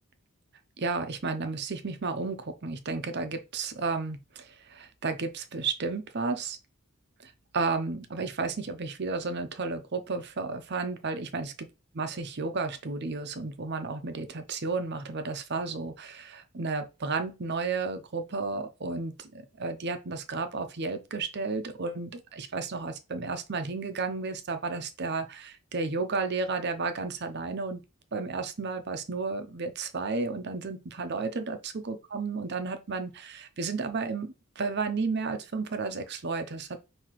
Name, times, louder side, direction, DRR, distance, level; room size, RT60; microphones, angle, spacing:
voice 1, 0.8-6.6 7.2-11.5 11.9-27.8 28.1-36.8, right 4 dB, 50° right, 0.7 m, -32 dB
5.7 x 2.8 x 3.1 m
head